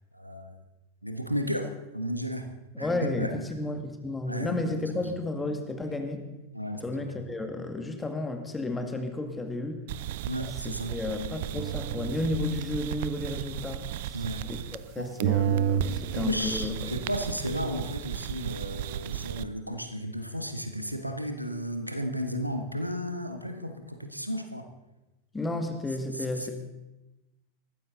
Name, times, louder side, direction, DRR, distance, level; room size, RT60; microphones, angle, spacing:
voice 1, 0.1-0.6 1.0-1.7 1.9-2.5 2.8-3.3 4.3-5.0 6.5-7.2 10.3-11.0 14.1-14.4 15.0-15.1 16.1-24.7 26.1-26.5, equal, 90° right, 6 dB, 1.5 m, -34 dB
voice 2, 2.7-6.2 6.8-9.8 10.6-14.2 14.5-14.6 15.0-17.0 25.3-26.5, left 2 dB, 10° left, 5 dB, 2.0 m, -32 dB
sound 1, 9.9-14.9 15.2-19.4, right 10 dB, 50° right, 0.6 m, -32 dB
20.0 x 14.5 x 4.0 m, 1.0 s
figure-of-eight pair, 90°, 0 cm